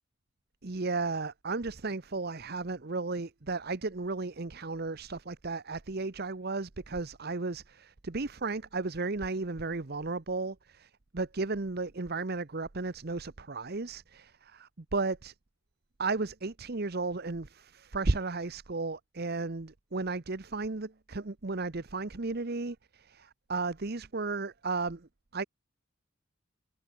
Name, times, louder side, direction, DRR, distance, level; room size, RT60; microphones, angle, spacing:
voice 1, 0.6-15.3 16.0-25.4, right 3 dB, 50° right, 1.0 m, -34 dB
head